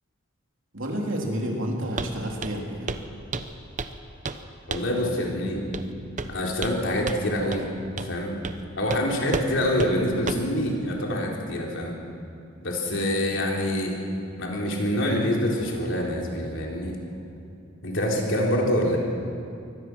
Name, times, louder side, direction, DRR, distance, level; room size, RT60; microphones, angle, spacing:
voice 1, 0.7-2.9 12.9-13.1, equal, 70° right, 0 dB, 3.3 m, -30 dB
Walk footsteps, 2.0-2.1 2.4-2.6 2.9-3.1 3.3-4.0 4.2-4.4 4.7-5.0 5.7-5.9 6.2-6.8 7.1-7.2 7.5-7.6 8.0-8.1 8.4-8.6 8.9-9.0 9.3-9.5 9.8-9.9 10.3-10.5, right 3 dB, 40° right, 0.9 m, -31 dB
voice 2, 4.7-5.6 6.3-7.7 8.0-8.3 8.8-11.9 12.6-13.9 14.4-16.9 17.8-19.0, left 1 dB, 65° left, -1 dB, 3.9 m, -26 dB
23.5 x 18.0 x 6.2 m, 2.6 s
head